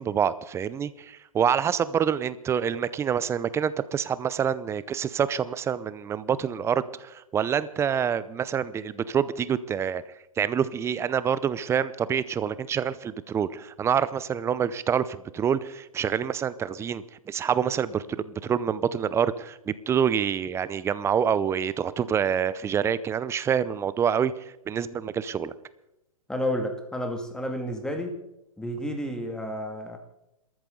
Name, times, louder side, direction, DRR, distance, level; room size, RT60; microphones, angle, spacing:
voice 1, 0.0-10.0 10.4-24.3 24.7-25.5, right 8 dB, 15° right, 16 dB, 0.7 m, -27 dB
voice 2, 26.3-28.1 28.6-30.0, equal, 5° left, 4 dB, 2.3 m, -31 dB
26.5 x 14.0 x 3.9 m, 0.88 s
hypercardioid pair, 130°, 18 cm